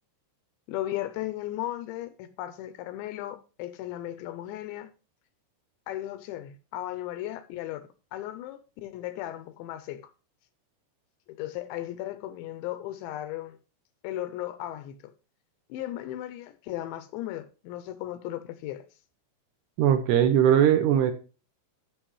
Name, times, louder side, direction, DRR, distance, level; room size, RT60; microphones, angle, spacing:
voice 1, 0.7-4.9 5.9-10.1 11.3-13.6 14.0-15.1 15.7-18.9, left 13 dB, 80° left, 2.8 m, -36 dB
voice 2, 19.8-21.1, right 9 dB, 75° right, 2.7 m, -20 dB
12.5 x 6.9 x 3.1 m
omnidirectional pair, 5.5 m